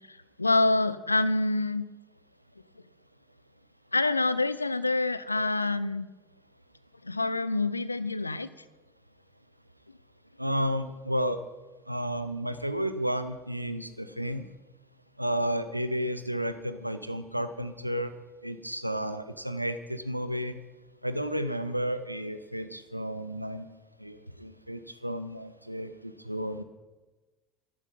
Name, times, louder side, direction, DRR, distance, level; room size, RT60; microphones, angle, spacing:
voice 1, 0.1-1.9 3.9-6.1 7.0-8.5, left 2 dB, 85° left, 17 dB, 0.4 m, -26 dB
voice 2, 10.4-11.4 11.9-14.4 15.2-18.1 18.4-20.6 21.0-23.7 24.0-26.6, equal, 90° right, 11 dB, 0.6 m, -32 dB
11.5 x 11.5 x 5.3 m, 1.2 s
figure-of-eight pair, 65°, 0 cm